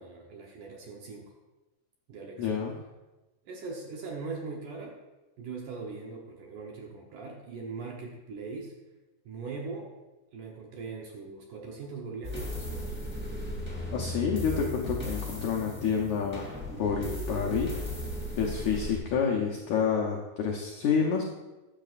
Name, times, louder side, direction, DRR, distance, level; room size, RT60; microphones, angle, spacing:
voice 1, 0.0-1.3 2.1-2.5 3.5-5.0 5.4-8.7 9.3-9.9 10.3-12.9, right 4 dB, 70° right, 0 dB, 2.0 m, -40 dB
voice 2, 2.4-2.7 13.9-17.7 18.4-21.2, left 6 dB, 80° left, 0 dB, 1.7 m, -29 dB
sound 1, 12.2-19.0, left 1 dB, 5° right, 2.1 m, -36 dB
14.0 x 10.0 x 2.5 m, 1.1 s
omnidirectional pair, 4.5 m